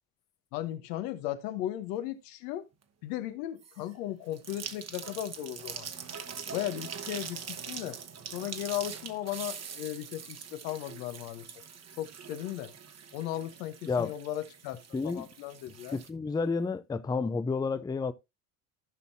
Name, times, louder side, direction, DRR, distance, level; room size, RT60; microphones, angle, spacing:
voice 1, 0.5-2.6 3.0-5.9 6.5-8.0 8.3-11.6 12.0-12.7 13.1-14.8 15.0-16.0, left 13 dB, 80° left, 1.2 m, -36 dB
sound 1, 3.6-3.9 4.3-16.1, right 6 dB, 30° right, 1.2 m, -43 dB
voice 2, 14.9-15.3 15.9-18.1, left 4 dB, 10° left, 0.5 m, -30 dB
15.0 x 5.5 x 2.7 m
supercardioid pair, 80°, 48 cm